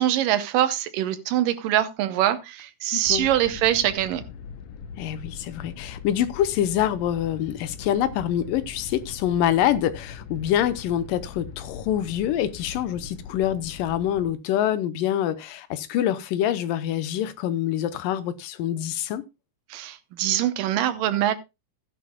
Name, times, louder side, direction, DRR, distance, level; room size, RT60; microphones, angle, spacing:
voice 1, 0.0-4.2 19.7-21.4, right 12 dB, 80° right, 2.6 m, -23 dB
voice 2, 2.9-3.3 5.0-19.2, left 11 dB, 90° left, 2.5 m, -25 dB
sound 1, 3.0-14.3, left 6 dB, 75° left, 1.5 m, -41 dB
16.0 x 10.0 x 2.3 m
omnidirectional pair, 3.8 m